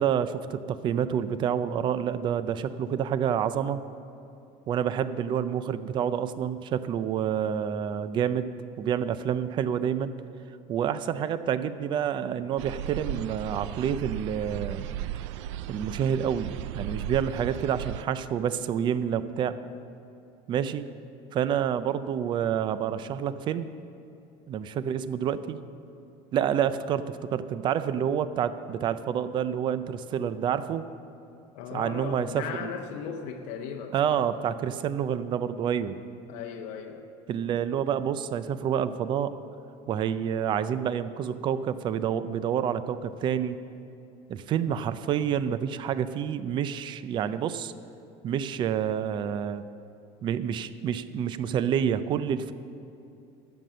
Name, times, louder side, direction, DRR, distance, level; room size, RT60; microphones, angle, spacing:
voice 1, 0.0-3.8 4.7-10.1 10.7-14.8 15.7-19.6 20.5-21.0 21.3-23.7 24.5-25.6 26.3-30.9 31.7-32.7 33.9-36.0 37.3-39.4 39.9-43.6 44.3-47.7 48.2-49.6 50.2-52.5, right 8 dB, 30° right, 14 dB, 0.5 m, -28 dB
sound 1, 12.6-18.0, right 12 dB, 90° right, 0.4 m, -36 dB
voice 2, 31.5-34.3 36.3-37.0, left 7 dB, 60° left, 3 dB, 0.8 m, -37 dB
12.0 x 7.7 x 7.4 m, 2.7 s
cardioid pair, 150°, 15 cm